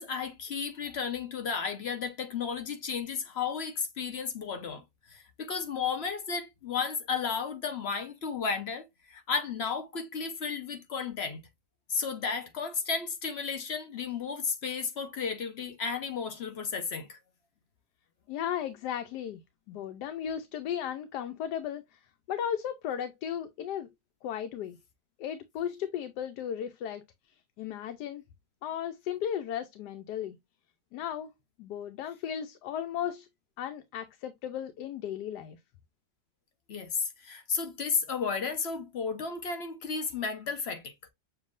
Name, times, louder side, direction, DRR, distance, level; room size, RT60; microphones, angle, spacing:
voice 1, 0.0-11.4 11.9-17.2 36.7-40.9, left 5 dB, 55° left, 0.8 m, -33 dB
voice 2, 18.3-19.4 19.7-22.0 22.3-23.9 24.2-24.8 25.2-28.2 28.6-30.4 30.9-31.3 31.6-33.3 33.6-35.6, left 9 dB, 85° left, 1.2 m, -35 dB
6.7 x 2.8 x 2.4 m
omnidirectional pair, 1.7 m